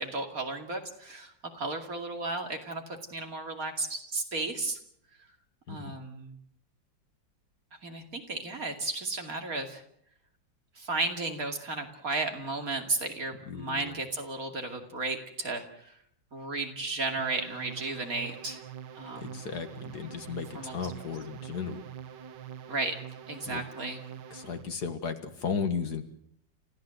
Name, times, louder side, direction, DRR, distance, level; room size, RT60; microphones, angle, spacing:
voice 1, 0.0-4.8 5.7-6.4 7.8-9.8 10.8-16.0 16.3-18.6 18.9-19.4 20.5-20.9 22.7-23.0 23.3-24.0, right 3 dB, 45° right, 4 dB, 3.0 m, -34 dB
voice 2, 13.5-14.0 19.2-21.8 23.5-23.6 24.3-26.1, left 6 dB, 60° left, 8 dB, 2.1 m, -35 dB
sound 1, 17.2-24.7, right 8 dB, 70° right, 1.7 m, -45 dB
29.5 x 15.0 x 7.8 m, 0.71 s
omnidirectional pair, 2.0 m